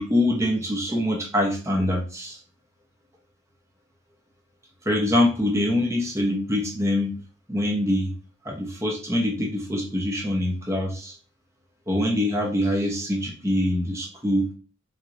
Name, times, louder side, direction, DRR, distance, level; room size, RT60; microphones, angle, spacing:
voice 1, 0.0-2.4 4.9-7.2 7.5-8.2 8.4-11.2 11.9-14.5, left 1 dB, 15° right, 0 dB, 0.7 m, -24 dB
4.0 x 2.9 x 2.5 m, 0.38 s
head